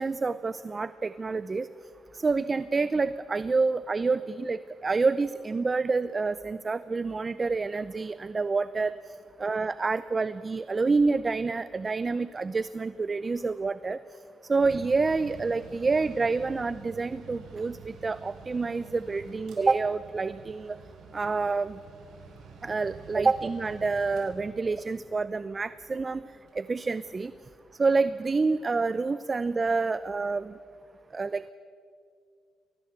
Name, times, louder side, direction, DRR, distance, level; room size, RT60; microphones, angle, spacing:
voice 1, 0.0-1.7 2.1-8.9 9.4-14.0 14.5-20.8 21.1-21.8 22.6-26.2 26.5-27.3 27.8-30.6 31.1-31.5, right 4 dB, 35° right, 15 dB, 0.6 m, -28 dB
Mechanical fan, 14.6-28.0, right 4 dB, 85° right, 4.9 m, -49 dB
22.0 x 18.0 x 8.1 m, 2.2 s
cardioid pair, 80°, 0 cm